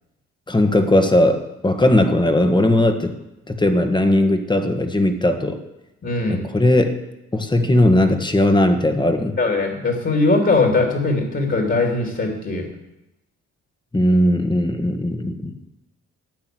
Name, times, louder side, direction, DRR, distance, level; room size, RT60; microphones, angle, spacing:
voice 1, 0.5-3.1 3.5-5.6 6.3-7.0 7.3-9.4 13.9-15.5, left 1 dB, 15° left, 7 dB, 1.6 m, -18 dB
voice 2, 6.0-6.4 9.4-12.7, left 3 dB, 40° left, 2 dB, 2.9 m, -20 dB
12.0 x 8.9 x 7.7 m, 0.92 s
cardioid pair, 90°, 30 cm